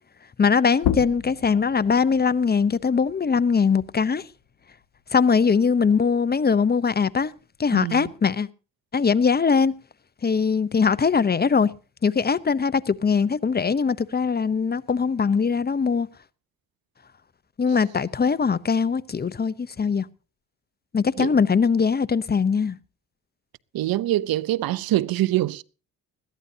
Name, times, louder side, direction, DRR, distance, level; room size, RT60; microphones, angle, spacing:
voice 1, 0.4-4.3 5.1-7.3 7.6-8.5 8.9-9.7 10.2-11.7 12.0-16.1 17.6-20.1 20.9-22.8, left 5 dB, 25° left, 0.8 m, -21 dB
sound 1, 0.8-6.0 6.4-8.2, left 10 dB, 90° left, 1.2 m, -34 dB
voice 2, 7.7-8.1 21.2-21.4 23.7-25.6, right 15 dB, 70° right, 0.7 m, -24 dB
20.5 x 14.0 x 2.8 m
cardioid pair, 80°, 36 cm